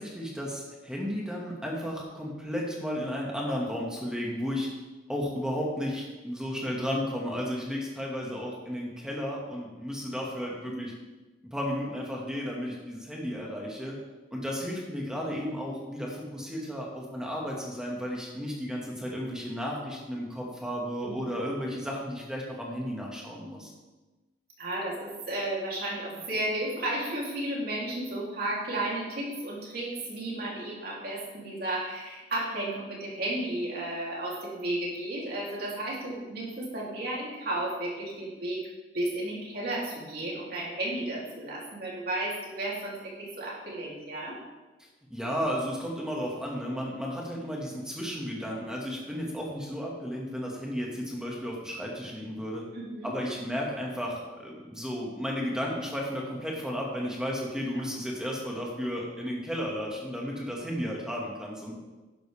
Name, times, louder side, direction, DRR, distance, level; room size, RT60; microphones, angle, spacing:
voice 1, 0.0-4.7 5.1-10.9 11.5-13.9 14.3-23.7 45.1-52.6 53.0-61.7, equal, 5° right, -3 dB, 2.0 m, -33 dB
voice 2, 24.6-38.6 38.9-44.4 52.7-53.1 57.7-57.8, right 1 dB, 50° right, -4 dB, 3.4 m, -33 dB
11.5 x 10.5 x 3.6 m, 1.2 s
head